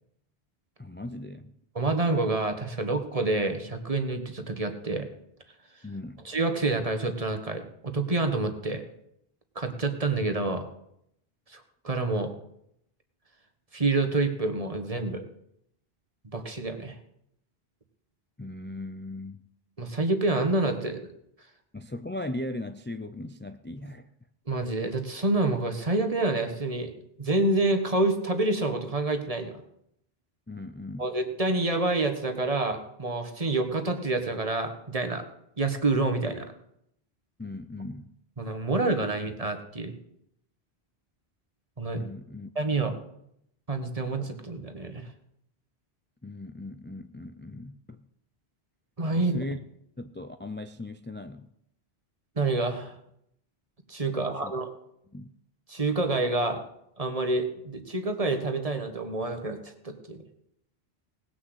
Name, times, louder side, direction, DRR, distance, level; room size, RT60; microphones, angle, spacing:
voice 1, 0.8-1.5 5.8-6.2 18.4-19.4 21.7-24.1 30.5-31.1 37.4-38.1 42.0-42.5 46.2-48.0 49.1-49.6 50.0-51.5 54.2-54.5 55.1-55.3, left 2 dB, 15° left, 0.4 m, -38 dB
voice 2, 1.7-5.1 6.2-8.8 9.5-10.6 11.5-12.3 13.7-15.2 16.3-16.9 19.8-21.0 24.5-29.6 31.0-35.2 35.6-36.5 38.4-39.9 41.8-42.0 42.5-42.9 43.7-45.1 49.0-49.4 52.4-53.0 53.9-54.7 55.7-56.6 57.0-60.2, right 2 dB, 35° right, 1.6 m, -28 dB
18.5 x 6.4 x 8.0 m
omnidirectional pair, 1.1 m